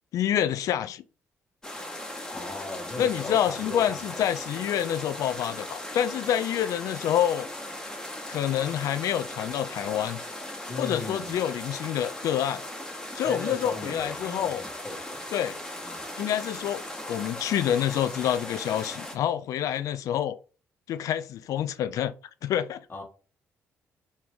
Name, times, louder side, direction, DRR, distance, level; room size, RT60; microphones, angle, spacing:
voice 1, 0.1-1.0 3.0-7.5 8.3-10.2 10.8-12.6 13.2-14.6 15.3-15.6 16.2-16.8 17.1-20.4 20.9-22.1 22.4-22.8, left 10 dB, 55° left, 0.3 m, -27 dB
sound 1, 1.6-19.2, left 1 dB, 10° left, 1.0 m, -38 dB
voice 2, 2.3-4.3 4.5-4.8 10.7-11.4 13.1-15.2 15.8-16.0 22.9-23.0, left 2 dB, 30° left, 1.2 m, -38 dB
2.9 x 2.7 x 3.3 m
figure-of-eight pair, 45°, 7 cm